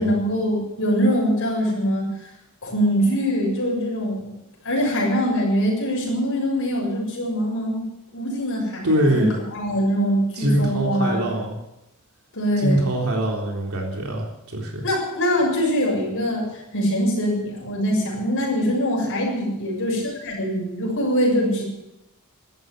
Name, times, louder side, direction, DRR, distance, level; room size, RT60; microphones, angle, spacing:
voice 1, 0.0-2.3 2.6-4.3 4.6-7.9 8.1-9.3 9.5-11.2 12.3-12.9 14.8-21.6, equal, 65° left, -1 dB, 7.1 m, -23 dB
voice 2, 8.8-9.4 10.4-11.6 12.6-14.3 14.5-14.8, right 1 dB, 70° right, -1 dB, 3.7 m, -23 dB
14.5 x 12.5 x 8.0 m, 0.90 s
head